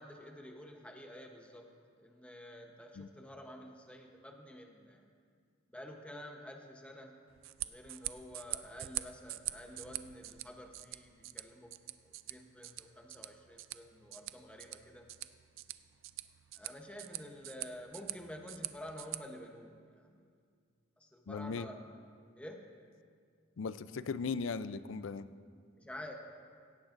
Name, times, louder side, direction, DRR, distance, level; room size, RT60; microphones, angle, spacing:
voice 1, 0.0-1.7 2.0-5.1 5.7-7.2 7.6-11.7 12.0-15.1 16.5-20.2 21.0-21.8 22.4-22.6 25.8-26.1, equal, 5° left, 2 dB, 0.9 m, -50 dB
sound 1, 7.3-19.2, right 16 dB, 85° right, 0.4 m, -45 dB
voice 2, 21.3-21.7 23.6-25.3, left 5 dB, 80° left, 14 dB, 0.4 m, -38 dB
17.0 x 15.0 x 2.6 m, 2.1 s
head